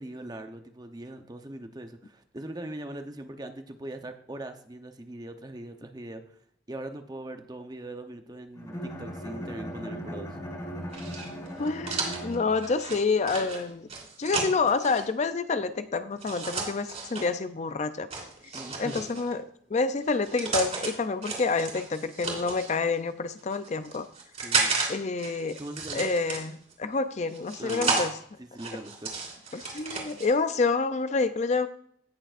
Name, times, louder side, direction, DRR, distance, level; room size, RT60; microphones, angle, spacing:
voice 1, 0.0-6.2 6.7-10.4 18.5-19.0 24.4-24.8 25.6-26.1 27.6-28.1 28.4-29.1, right 1 dB, 20° right, 7 dB, 0.8 m, -40 dB
Bowed string instrument, 8.6-12.9, equal, 20° left, 2.1 m, -38 dB
sound 1, 10.9-15.0 16.2-17.3 18.1-19.3 20.0-20.9 21.2-22.7 23.4-24.9 25.2-26.7 27.3-28.1 28.6-30.3, right 4 dB, 40° right, 2.9 m, -32 dB
voice 2, 11.6-13.9 14.2-18.1 18.8-19.4 19.7-24.1 24.9-25.6 25.9-28.1 29.5-31.7, left 4 dB, 40° left, 11 dB, 0.4 m, -28 dB
17.0 x 6.7 x 2.5 m, 0.65 s
head